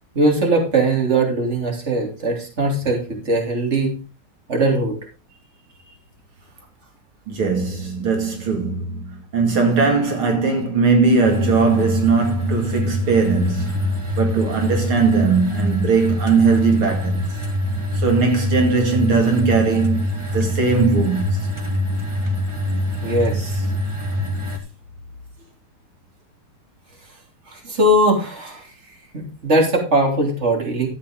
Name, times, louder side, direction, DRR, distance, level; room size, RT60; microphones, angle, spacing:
voice 1, 0.1-3.9 4.5-5.0 23.0-23.6 27.5-28.7 29.1-30.9, right 1 dB, 30° right, 3.4 m, -20 dB
voice 2, 7.3-13.9 14.2-17.3 17.9-21.5, right 4 dB, 75° right, 3.1 m, -19 dB
sound 1, 11.2-24.6, left 1 dB, 15° right, 1.5 m, -24 dB
13.0 x 8.7 x 3.7 m
omnidirectional pair, 2.3 m